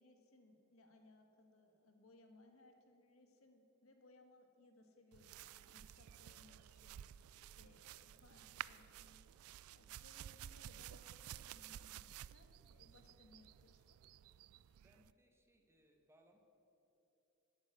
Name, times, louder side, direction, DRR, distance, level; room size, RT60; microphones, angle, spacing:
voice 1, 0.0-7.0 7.5-9.2 9.7-14.0, left 2 dB, 75° left, 4 dB, 1.6 m, -66 dB
sound 1, 5.1-15.1, right 11 dB, 90° right, 0.3 m, -53 dB
voice 2, 14.8-16.4, equal, 10° right, 4 dB, 1.2 m, -72 dB
11.5 x 9.0 x 9.4 m, 3.0 s
head